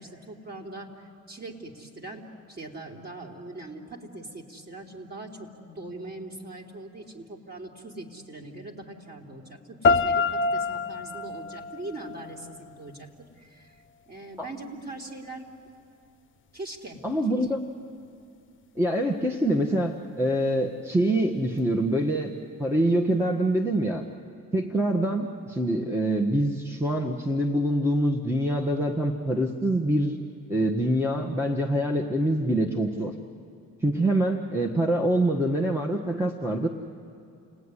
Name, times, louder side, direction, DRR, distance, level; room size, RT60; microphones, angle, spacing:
voice 1, 0.0-13.1 13.4-13.8 14.1-15.4 16.5-17.0 17.4-17.5, right 2 dB, 35° right, 1 dB, 3.4 m, -41 dB
sound 1, 9.8-12.8, left 4 dB, 40° left, 0.8 m, -26 dB
voice 2, 17.0-17.6 18.7-22.3 22.6-24.0 24.5-30.2 30.5-33.1 33.8-36.7, right 1 dB, 10° right, 2 dB, 1.4 m, -25 dB
29.5 x 19.0 x 9.9 m, 2.5 s
cardioid pair, 90°, 30 cm